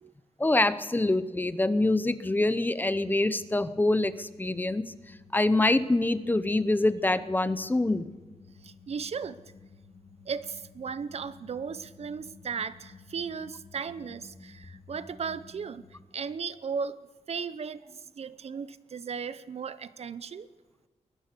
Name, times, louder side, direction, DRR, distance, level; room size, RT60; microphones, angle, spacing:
voice 1, 0.4-4.9 5.3-8.1, left 2 dB, 15° left, 13 dB, 0.8 m, -25 dB
sound 1, 3.4-16.0, left 4 dB, 35° left, 1.6 m, -53 dB
voice 2, 8.6-9.4 10.3-15.8 16.1-17.0 17.3-20.5, right 6 dB, 55° right, 15 dB, 0.7 m, -36 dB
21.5 x 20.0 x 6.8 m, 1.2 s
wide cardioid pair, 155°, 12 cm